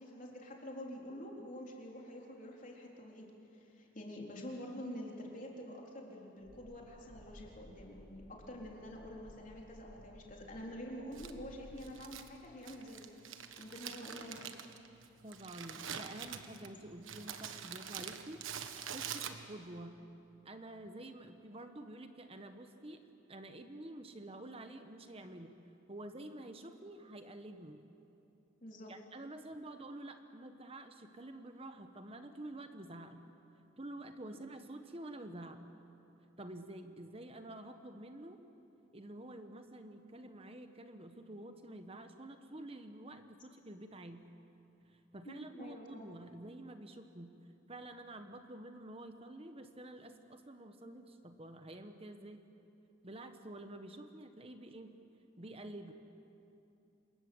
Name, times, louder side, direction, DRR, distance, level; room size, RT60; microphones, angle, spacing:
voice 1, 0.0-13.1 13.6-14.5 28.6-28.9 45.2-46.1, equal, 40° left, -1 dB, 3.8 m, -47 dB
sound 1, 6.4-11.9, equal, 60° left, 6.8 m, -57 dB
Crumpling crinkling, 11.1-19.8, right 7 dB, 80° right, 1.3 m, -46 dB
voice 2, 15.2-18.4 18.9-20.0 20.4-23.0 23.3-25.6 25.9-27.8 28.9-33.2 33.8-35.6 36.4-38.4 38.9-44.3 44.9-47.4 47.7-52.4 53.0-55.0 55.4-55.9, right 1 dB, 30° right, 7 dB, 1.2 m, -49 dB
27.0 x 21.5 x 7.9 m, 2.8 s
head